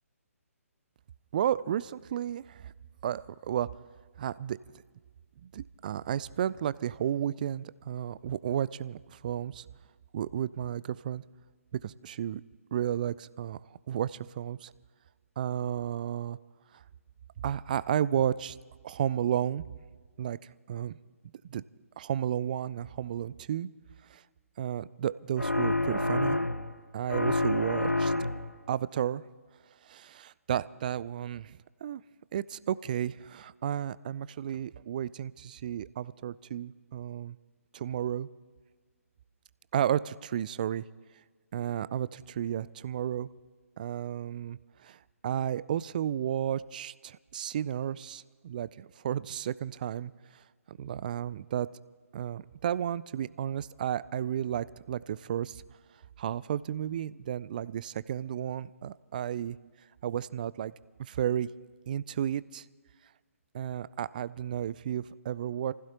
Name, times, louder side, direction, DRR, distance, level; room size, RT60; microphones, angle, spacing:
voice 1, 1.3-2.7 3.0-3.7 4.2-4.6 5.4-9.6 10.1-11.2 11.7-12.4 12.7-13.6 13.9-14.7 15.4-16.4 17.4-18.6 18.8-19.6 20.2-21.0 21.5-21.6 22.0-23.7 24.1-24.2 24.6-26.4 26.9-28.1 28.7-29.2 29.8-31.5 31.8-32.0 32.3-37.4 37.7-38.3 39.7-40.8 41.5-43.3 43.8-50.1 50.7-51.7 52.1-55.6 56.2-59.6 60.0-60.7 61.0-61.5 61.9-62.6 63.5-65.7, right 10 dB, 35° right, 19 dB, 0.3 m, -32 dB
sound 1, 25.4-26.8 27.1-28.6, left 2 dB, 85° left, 0.9 m, -28 dB
28.0 x 15.5 x 2.9 m, 1.5 s
figure-of-eight pair, 135°, 8 cm